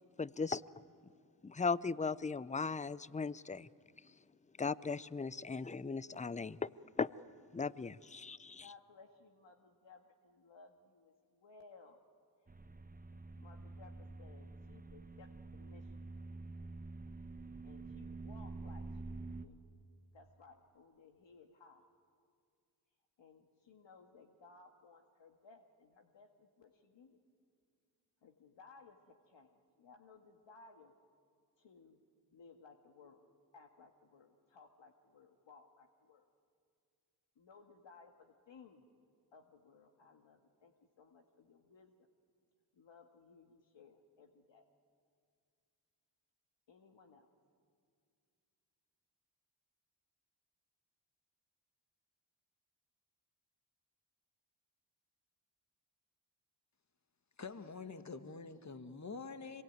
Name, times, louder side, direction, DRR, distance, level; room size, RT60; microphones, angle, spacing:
voice 1, 0.2-0.6 1.4-3.7 4.6-6.7 7.0-7.1 7.5-8.6, left 4 dB, 15° left, 19 dB, 0.6 m, -37 dB
voice 2, 8.6-12.0 13.1-15.9 17.6-19.6 20.1-21.8 23.2-27.2 28.2-30.9 31.6-32.0 32.3-33.3 33.5-36.2 37.4-38.9 39.3-41.9 42.7-44.6 46.7-47.3, left 4 dB, 60° left, 3 dB, 1.9 m, -61 dB
sound 1, 12.5-19.5, right 3 dB, 15° right, 1.1 m, -48 dB
voice 3, 57.4-59.6, left 4 dB, 35° left, 10 dB, 1.7 m, -46 dB
25.5 x 22.5 x 9.3 m, 2.2 s
supercardioid pair, 45°, 49 cm